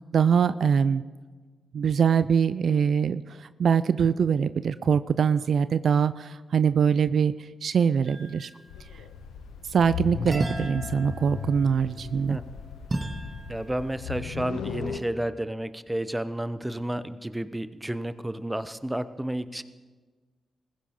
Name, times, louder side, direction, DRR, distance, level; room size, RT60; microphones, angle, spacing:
voice 1, 0.1-1.0 1.7-8.5 9.7-12.4, right 7 dB, 70° right, 14 dB, 0.4 m, -23 dB
sound 1, 8.1-8.8 10.3-13.9, right 2 dB, 35° right, 2.0 m, -35 dB
sound 2, 8.7-15.0, left 7 dB, 90° left, 0.8 m, -37 dB
voice 2, 13.5-19.6, right 1 dB, 15° right, 13 dB, 0.9 m, -31 dB
20.0 x 15.5 x 3.8 m, 1.4 s
supercardioid pair, 40°, 0 cm